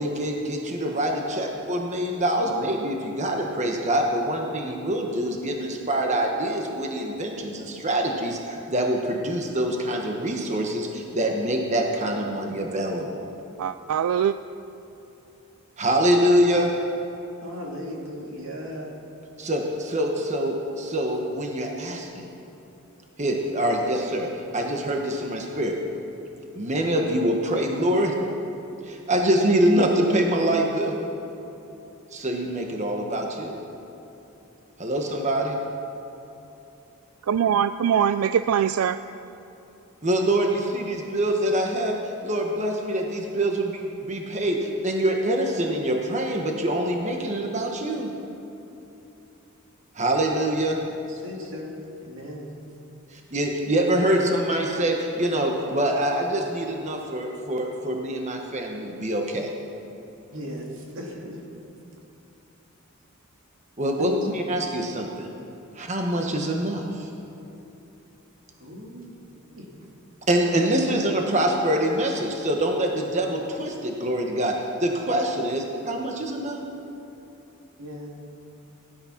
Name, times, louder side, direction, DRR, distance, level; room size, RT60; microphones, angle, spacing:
voice 1, 0.0-13.3 15.8-16.7 19.4-22.3 23.2-24.3 24.5-25.7 26.6-28.1 28.8-31.0 32.1-33.5 34.8-35.6 40.0-48.1 49.9-50.8 53.1-59.5 63.8-65.3 65.8-67.1 70.3-74.5 74.8-76.6, right 1 dB, 35° right, 1.2 m, -25 dB
voice 2, 13.6-14.3 37.3-39.0, right 8 dB, 85° right, 0.4 m, -22 dB
voice 3, 17.4-18.9 50.8-52.5 60.3-61.4 64.0-64.4 68.6-69.7 77.8-78.2, left 1 dB, 65° right, 2.6 m, -37 dB
17.0 x 11.0 x 5.9 m
head